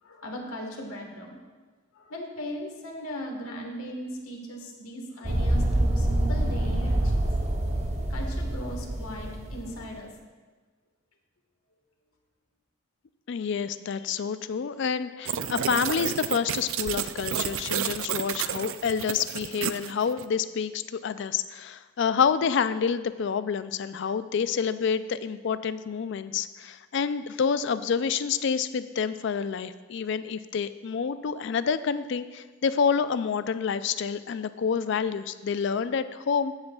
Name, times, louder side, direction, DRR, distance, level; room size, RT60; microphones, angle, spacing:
voice 1, 0.0-1.4 1.9-7.2 8.1-10.1, equal, 85° left, 1 dB, 1.5 m, -38 dB
sound 1, 5.2-9.8, right 1 dB, 30° right, 0.8 m, -26 dB
voice 2, 13.3-36.6, left 6 dB, 55° left, 13 dB, 0.3 m, -28 dB
sound 2, 15.3-20.3, right 9 dB, 70° right, 0.4 m, -31 dB
14.5 x 8.0 x 2.3 m, 1.4 s
head